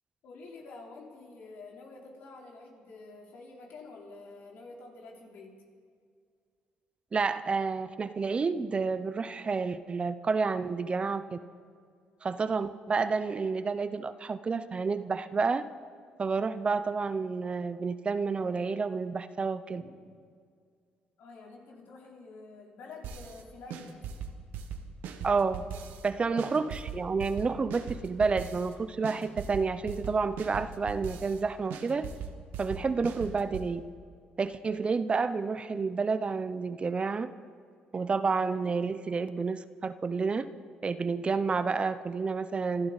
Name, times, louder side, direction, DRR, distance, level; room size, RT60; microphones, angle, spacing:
voice 1, 0.2-5.5 19.8-19.9 21.2-23.9 26.1-26.4, left 3 dB, 75° left, -2 dB, 3.7 m, -48 dB
voice 2, 7.1-11.4 12.2-15.7 16.2-19.8 25.2-25.7 26.0-32.1 32.6-33.8 34.4-37.3 37.9-40.5 40.8-42.9, right 4 dB, 35° right, 13 dB, 0.7 m, -30 dB
sound 1, 23.0-23.4 23.7-26.1 26.4-28.7 29.0-31.4 31.7-33.7, right 6 dB, 80° right, 1.3 m, -40 dB
26.0 x 12.5 x 4.1 m, 2.2 s
cardioid pair, 85°, 3 cm